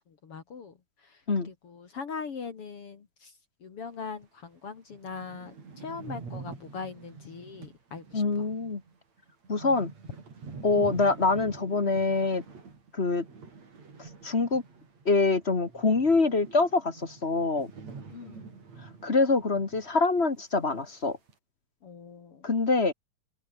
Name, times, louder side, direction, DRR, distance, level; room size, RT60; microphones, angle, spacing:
voice 1, 0.1-0.7 1.0-3.3 3.6-8.2 18.1-18.5 21.8-22.5, left 5 dB, 50° left, 3.0 m, -41 dB
sound 1, 4.2-4.3 4.7-4.8 4.9-15.2 15.4-19.9 20.2-20.3 20.9-21.3, right 5 dB, 65° right, 5.7 m, -46 dB
voice 2, 8.1-8.8 9.5-9.9 10.6-12.4 12.9-13.2 14.0-14.6 15.0-17.7 19.0-21.2 22.4-22.9, left 3 dB, 25° left, 1.5 m, -25 dB
omnidirectional pair, 3.3 m